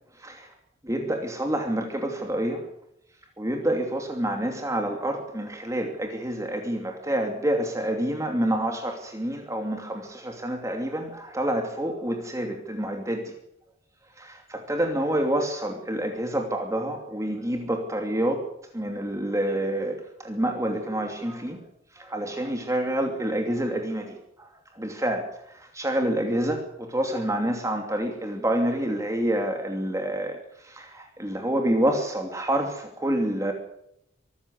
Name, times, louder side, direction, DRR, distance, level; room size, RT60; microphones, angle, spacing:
voice 1, 0.1-0.5 0.8-2.7 3.4-13.3 14.2-18.4 18.7-21.6 21.9-33.5, right 1 dB, 15° right, 4 dB, 2.8 m, -28 dB
25.0 x 14.5 x 8.2 m, 0.77 s
head